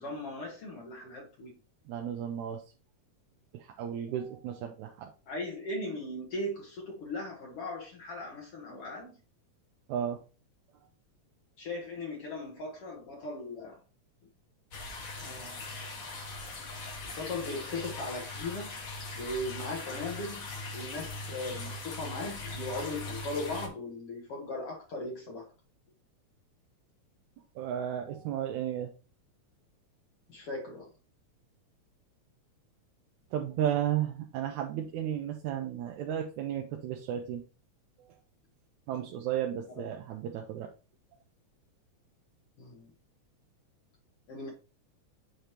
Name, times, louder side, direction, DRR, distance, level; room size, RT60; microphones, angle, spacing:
voice 1, 0.0-1.6 5.3-9.2 11.6-13.8 15.2-15.6 17.0-18.8 19.2-20.5 20.7-25.5 30.3-30.9 39.8-39.9 42.6-42.9 44.3-44.5, left 2 dB, 60° left, 1.9 m, -38 dB
voice 2, 1.9-2.6 3.5-5.1 9.9-10.2 27.6-28.9 33.3-37.4 38.9-40.7, right 10 dB, 85° right, 2.1 m, -33 dB
sound 1, 14.7-23.7, left 2 dB, 85° left, 0.7 m, -40 dB
7.9 x 5.1 x 2.9 m
omnidirectional pair, 3.3 m